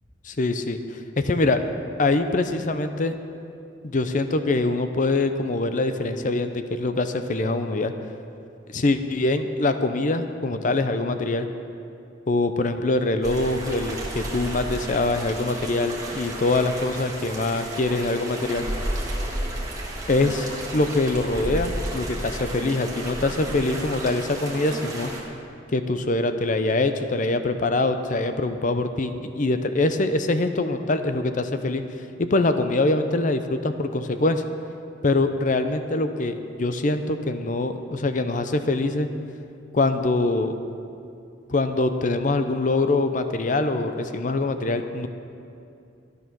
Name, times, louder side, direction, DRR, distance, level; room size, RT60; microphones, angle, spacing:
voice 1, 0.2-1.6 2.0-3.1 3.8-7.9 8.7-11.5 12.3-18.7 20.1-25.1 25.7-31.8 32.2-34.4 35.0-39.1 39.7-40.5 41.5-45.1, left 2 dB, 45° left, 9 dB, 0.6 m, -24 dB
sound 1, 13.2-25.2, right 1 dB, 20° right, 1.9 m, -32 dB
13.0 x 9.2 x 6.1 m, 2.5 s
head